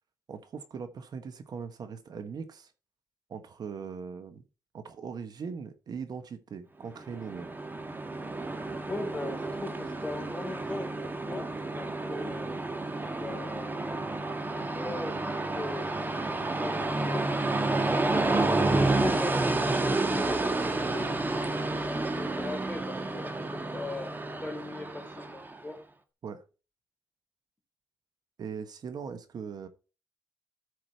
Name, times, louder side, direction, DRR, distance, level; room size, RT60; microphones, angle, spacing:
voice 1, 0.3-2.7 3.3-4.4 4.7-7.5 26.2-26.4 28.4-29.7, right 6 dB, 65° right, 1.1 m, -40 dB
Train, 7.0-25.6, right 2 dB, 25° right, 1.3 m, -30 dB
voice 2, 8.9-12.6 13.2-19.5 19.9-25.8, left 2 dB, 15° left, 2.9 m, -40 dB
13.5 x 4.9 x 4.4 m
wide cardioid pair, 105°, 7 cm